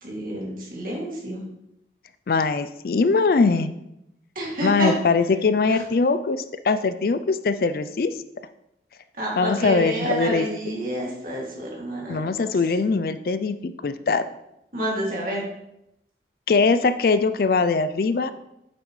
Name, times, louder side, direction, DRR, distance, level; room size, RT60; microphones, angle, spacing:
voice 1, 0.0-1.4 4.4-4.9 9.2-12.5 14.7-15.5, equal, 50° right, -3 dB, 2.5 m, -29 dB
voice 2, 2.3-3.7 4.6-8.1 9.4-10.5 12.1-14.2 16.5-18.3, left 4 dB, 55° left, 12 dB, 0.4 m, -21 dB
8.6 x 6.8 x 3.2 m, 0.84 s
head